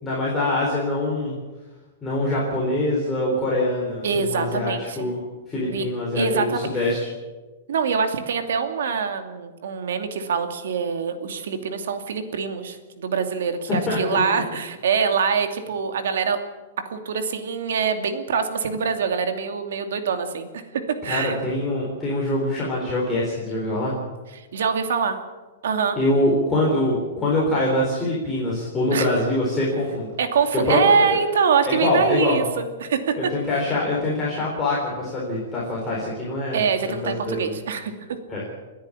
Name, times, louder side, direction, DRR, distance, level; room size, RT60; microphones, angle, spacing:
voice 1, 0.0-1.3 2.0-5.2 5.5-7.1 13.9-14.2 21.1-23.9 26.0-30.1 30.7-31.2 31.7-32.4 33.2-37.5 38.3-38.4, left 1 dB, 10° left, -6 dB, 3.9 m, -24 dB
voice 2, 4.0-5.1 5.6-5.9 6.1-6.7 7.7-16.4 16.8-20.6 20.9-21.4 24.3-25.2 25.6-26.0 28.9-29.1 30.2-33.3 36.5-38.2, right 6 dB, 80° right, 7 dB, 2.5 m, -24 dB
30.0 x 10.5 x 8.6 m, 1.2 s
supercardioid pair, 175°, 0 cm